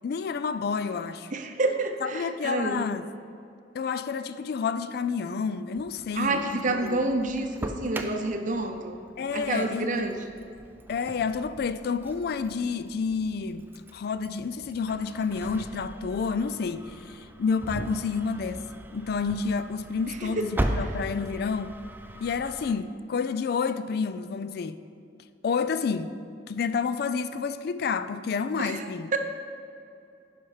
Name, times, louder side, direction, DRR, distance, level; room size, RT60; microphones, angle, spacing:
voice 1, 0.0-1.3 2.0-3.1 3.7-7.0 9.2-10.0 10.9-13.6 13.9-18.7 18.9-21.8 22.2-24.8 25.4-26.1 26.5-29.1, left 5 dB, 55° left, 0.3 m, -29 dB
voice 2, 1.3-2.8 6.1-9.0 9.3-10.3 20.1-20.8 28.6-29.2, right 2 dB, 45° right, 0.7 m, -29 dB
Engine starting, 5.8-22.7, right 1 dB, 10° right, 0.4 m, -38 dB
10.0 x 5.7 x 4.9 m
head